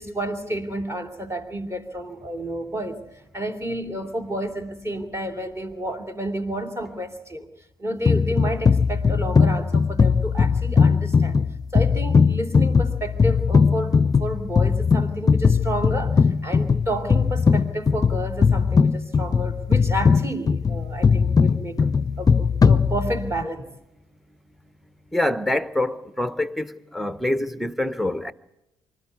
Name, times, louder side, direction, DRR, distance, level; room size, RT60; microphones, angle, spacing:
voice 1, 0.0-3.0 3.3-7.5 7.8-11.4 11.7-23.7, right 1 dB, 20° right, 2.8 m, -30 dB
sound 1, 8.0-23.4, left 5 dB, 30° left, 0.7 m, -19 dB
voice 2, 25.1-28.3, left 1 dB, ahead, 1.0 m, -25 dB
25.0 x 13.5 x 8.2 m
hypercardioid pair, 50°, 13 cm